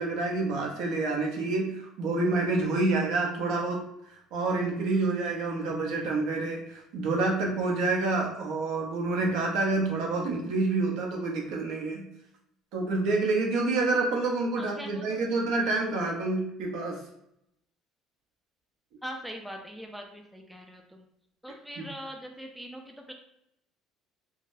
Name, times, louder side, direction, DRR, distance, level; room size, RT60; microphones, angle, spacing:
voice 1, 0.0-3.8 4.3-12.1 12.7-17.0 21.8-21.9, right 3 dB, 70° right, -1 dB, 0.8 m, -28 dB
voice 2, 14.5-15.2 19.0-21.1 21.4-23.1, equal, ahead, 2 dB, 0.3 m, -42 dB
3.9 x 2.1 x 2.6 m, 0.78 s
cardioid pair, 145°, 0 cm